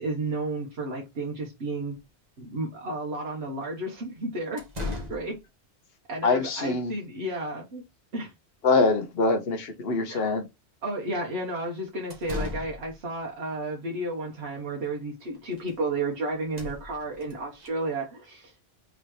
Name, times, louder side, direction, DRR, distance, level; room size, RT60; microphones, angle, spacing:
voice 1, 0.0-2.0 2.4-4.6 5.1-5.4 6.1-7.8 8.1-8.3 10.1-10.3 10.8-18.7, right 2 dB, 75° right, 1.5 m, -32 dB
sound 1, 2.0-2.1 3.9-4.0 4.6-5.4 11.9-13.0 14.8-14.9 15.2-15.8 16.1-16.2 16.4-17.7, left 2 dB, 40° right, 1.6 m, -37 dB
voice 2, 6.2-6.9 8.6-10.4, left 3 dB, 65° left, 1.2 m, -24 dB
4.1 x 4.0 x 3.1 m
omnidirectional pair, 1.1 m